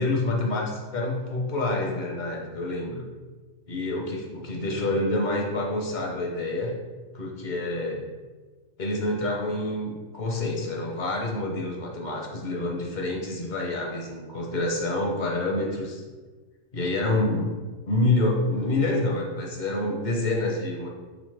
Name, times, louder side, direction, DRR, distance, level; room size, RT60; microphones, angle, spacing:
voice 1, 0.0-3.0 3.7-6.7 7.1-8.0 8.8-16.0 16.7-17.5 17.8-20.9, left 2 dB, 50° left, -1 dB, 0.6 m, -27 dB
4.0 x 3.6 x 3.2 m, 1.3 s
omnidirectional pair, 1.4 m